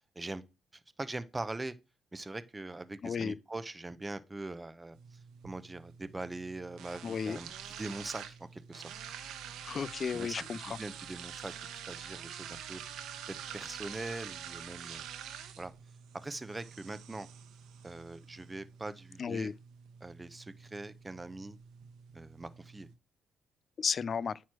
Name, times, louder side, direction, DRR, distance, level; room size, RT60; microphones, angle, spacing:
voice 1, 1.0-1.7 2.1-5.0 5.4-8.8 10.1-11.5 11.9-12.8 13.3-15.1 15.6-15.7 16.1-17.3 17.8-19.5 20.0-21.6 22.1-22.9, right 2 dB, 20° right, 0.7 m, -42 dB
voice 2, 3.0-3.4 7.0-7.4 9.6-10.8 19.2-19.5 23.8-24.4, left 6 dB, 45° left, 0.3 m, -34 dB
sound 1, 4.9-22.9, right 8 dB, 85° right, 0.9 m, -47 dB
9.2 x 3.1 x 6.0 m
cardioid pair, 90°, 0 cm